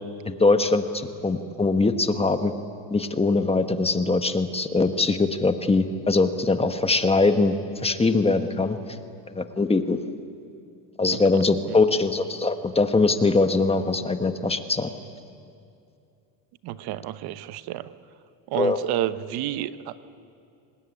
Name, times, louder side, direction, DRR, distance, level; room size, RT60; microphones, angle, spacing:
voice 1, 0.2-2.5 2.9-7.5 7.8-8.8 9.3-10.0 11.0-14.9 18.6-18.8, left 3 dB, 15° left, 8 dB, 1.3 m, -22 dB
voice 2, 16.6-17.9 18.5-20.0, right 13 dB, 60° right, 13 dB, 1.1 m, -30 dB
26.0 x 20.0 x 9.9 m, 2.5 s
supercardioid pair, 120°, 44 cm